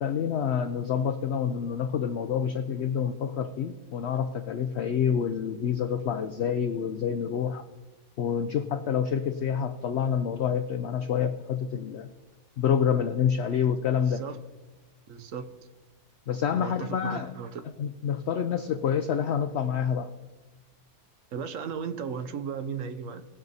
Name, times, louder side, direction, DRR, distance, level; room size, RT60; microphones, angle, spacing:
voice 1, 0.0-7.7 8.2-12.1 12.6-14.2 16.3-17.3 17.8-20.1, left 8 dB, 60° left, 8 dB, 0.7 m, -27 dB
voice 2, 14.0-14.4 15.1-15.5 16.5-17.6 21.3-23.3, right 6 dB, 65° right, 10 dB, 1.1 m, -36 dB
19.5 x 6.7 x 4.0 m, 1.2 s
omnidirectional pair, 1.6 m